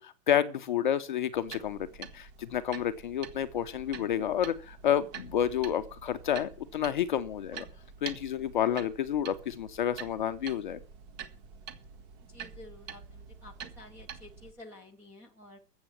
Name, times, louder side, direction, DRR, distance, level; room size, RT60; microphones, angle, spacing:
voice 1, 0.0-7.7 8.0-10.8, left 9 dB, 30° left, 0.6 m, -30 dB
sound 1, 1.3-14.5, right 7 dB, 25° right, 1.2 m, -47 dB
voice 2, 12.3-15.6, left 2 dB, 5° right, 0.6 m, -51 dB
13.5 x 8.0 x 7.3 m
hypercardioid pair, 165°, 47 cm